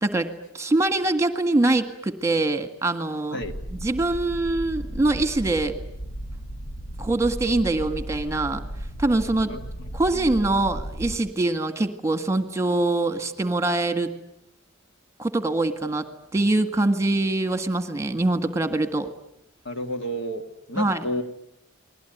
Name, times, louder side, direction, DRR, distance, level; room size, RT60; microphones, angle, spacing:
voice 1, 0.0-3.4 3.7-5.7 7.0-8.6 9.0-9.5 9.9-14.1 15.2-19.1 20.8-21.1, right 2 dB, 15° right, 9 dB, 1.7 m, -24 dB
sound 1, 3.4-11.2, right 1 dB, 85° left, 1.8 m, -35 dB
voice 2, 10.1-10.4 19.7-20.4 20.7-21.2, equal, 60° left, 6 dB, 2.3 m, -31 dB
29.5 x 21.0 x 9.2 m, 0.79 s
head